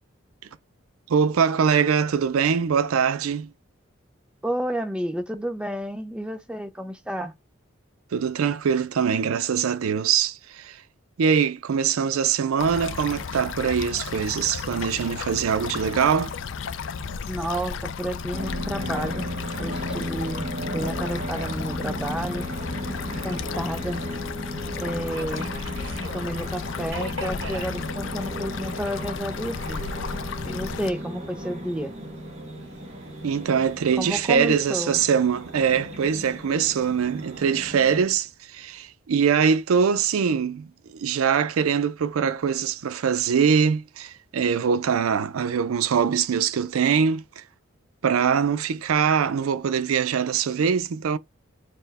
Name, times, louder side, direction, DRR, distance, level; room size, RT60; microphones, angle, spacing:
voice 1, 1.1-3.5 8.1-10.8 11.2-16.3 33.2-47.4 48.0-51.2, right 7 dB, 85° right, 0.4 m, -23 dB
voice 2, 4.4-7.3 17.3-19.3 19.6-22.5 23.2-24.0 24.8-25.5 26.1-29.9 30.4-31.9 34.0-35.0, equal, 5° right, 0.4 m, -31 dB
sound 1, 12.6-30.9, left 6 dB, 60° left, 0.4 m, -34 dB
sound 2, 18.3-38.0, equal, 30° right, 0.9 m, -35 dB
Subway metro underground, 22.2-35.3, right 1 dB, 65° right, 0.9 m, -45 dB
4.2 x 2.1 x 4.0 m
head